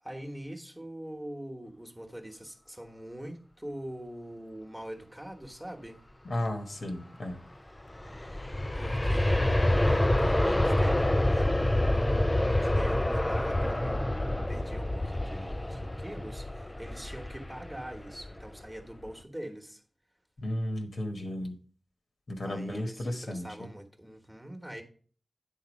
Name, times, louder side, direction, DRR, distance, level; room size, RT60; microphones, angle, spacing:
voice 1, 0.0-6.0 8.8-12.3 12.6-19.8 22.4-24.8, right 1 dB, 10° right, 1.2 m, -43 dB
voice 2, 6.2-7.4 20.4-21.6 22.3-23.7, left 1 dB, 65° left, 1.2 m, -34 dB
Aircraft, 7.8-18.6 19.1-19.2, left 1 dB, 15° left, 0.4 m, -27 dB
9.5 x 3.9 x 5.2 m
wide cardioid pair, 100°, 0 cm